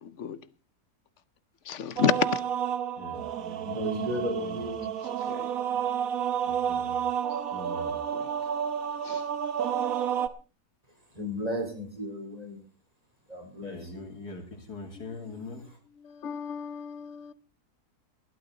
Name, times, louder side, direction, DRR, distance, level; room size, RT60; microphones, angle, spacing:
voice 1, 0.0-0.4 1.7-2.4 5.0-5.5 8.1-8.2 9.0-9.2 16.0-17.3, left 7 dB, 55° left, 1.0 m, -31 dB
sound 1, 2.0-10.3, right 8 dB, 65° right, 1.4 m, -30 dB
voice 2, 3.0-4.8 6.4-7.0 7.5-8.0 13.6-15.7, left 2 dB, 80° left, 3.6 m, -42 dB
voice 3, 3.6-4.9 11.1-12.6 13.3-14.0, equal, 25° right, 4.2 m, -34 dB
19.0 x 12.5 x 3.9 m
omnidirectional pair, 1.7 m